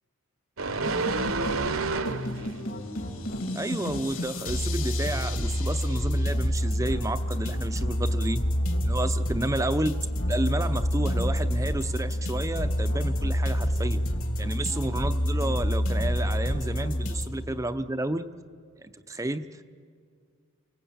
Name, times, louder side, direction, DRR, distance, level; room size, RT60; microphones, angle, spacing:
sound 1, 0.6-2.6 3.0-3.2, right 3 dB, 65° right, 1.0 m, -29 dB
sound 2, 0.7-17.2, equal, 65° left, 3.1 m, -28 dB
voice 1, 3.5-8.4 8.8-14.1 14.4-18.3 18.8-19.6, right 1 dB, 15° right, 9 dB, 0.6 m, -31 dB
28.0 x 19.5 x 8.7 m, 2.2 s
head